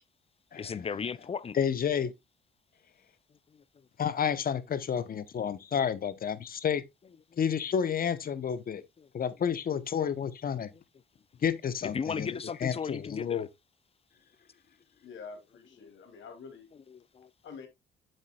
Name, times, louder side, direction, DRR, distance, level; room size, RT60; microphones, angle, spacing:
voice 1, 0.6-1.6 3.5-3.9 7.3-7.4 9.0-9.1 11.9-13.5 15.8-15.9 16.9-17.3, left 6 dB, 30° left, 0.5 m, -36 dB
voice 2, 1.5-2.1 4.0-6.8 7.4-8.8 9.1-10.7 11.4-13.5, left 8 dB, 45° left, 0.9 m, -30 dB
voice 3, 15.0-16.7 17.4-17.7, left 5 dB, 70° left, 2.6 m, -46 dB
7.8 x 7.3 x 2.3 m
cardioid pair, 90°, 20 cm